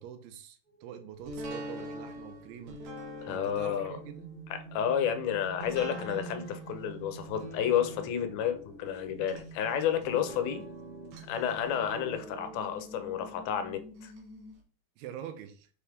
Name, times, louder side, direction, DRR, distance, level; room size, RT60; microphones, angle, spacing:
voice 1, 0.0-2.8 3.3-4.3 15.0-15.7, right 9 dB, 90° right, 2.7 m, -45 dB
sound 1, 0.7-14.5, right 4 dB, 5° left, 2.6 m, -49 dB
sound 2, 1.2-14.2 14.6-14.7, right 1 dB, 60° right, 2.5 m, -45 dB
voice 2, 3.2-4.0 4.5-10.6 11.3-14.1, left 9 dB, 80° left, 2.6 m, -31 dB
6.5 x 4.8 x 3.5 m
omnidirectional pair, 4.3 m